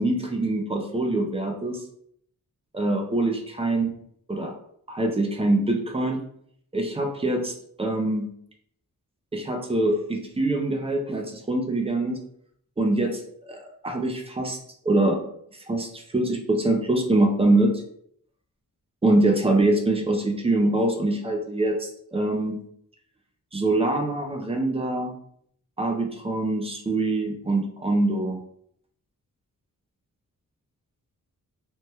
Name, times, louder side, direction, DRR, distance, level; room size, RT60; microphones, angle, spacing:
voice 1, 0.0-1.8 2.7-3.9 4.3-4.5 4.9-6.2 6.7-8.3 9.3-12.2 12.8-14.6 14.8-15.2 15.7-17.8 19.0-22.6 23.5-25.1 25.8-28.4, right 2 dB, 20° right, 3 dB, 0.4 m, -24 dB
3.4 x 2.1 x 2.8 m, 0.67 s
wide cardioid pair, 165°, 34 cm